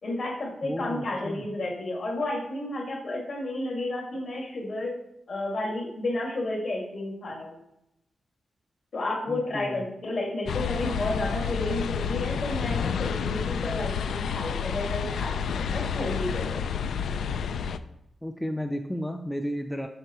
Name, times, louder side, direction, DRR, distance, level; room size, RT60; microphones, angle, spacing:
voice 1, 0.0-5.0 5.3-7.5 8.9-16.6, left 2 dB, 50° left, -2 dB, 2.0 m, -32 dB
voice 2, 0.6-1.5 9.3-9.9 18.2-19.9, equal, 5° left, 4 dB, 0.3 m, -33 dB
sound 1, 10.5-17.8, left 7 dB, 90° left, 0.3 m, -29 dB
7.9 x 6.3 x 3.0 m, 0.82 s
wide cardioid pair, 180°, 0 cm